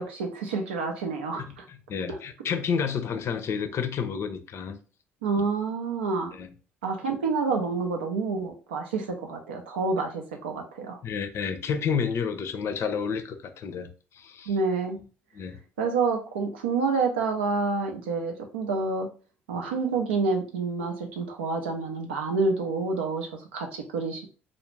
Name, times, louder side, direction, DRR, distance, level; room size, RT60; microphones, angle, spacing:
voice 1, 0.0-1.6 2.1-2.2 5.2-6.3 6.8-11.0 14.5-15.0 15.8-19.1 19.5-24.3, right 4 dB, 90° right, 0.5 m, -28 dB
voice 2, 1.4-4.8 6.3-6.5 11.0-14.5 15.3-15.6, left 6 dB, 50° left, 0.5 m, -30 dB
2.4 x 2.0 x 3.1 m
hypercardioid pair, 60°, 6 cm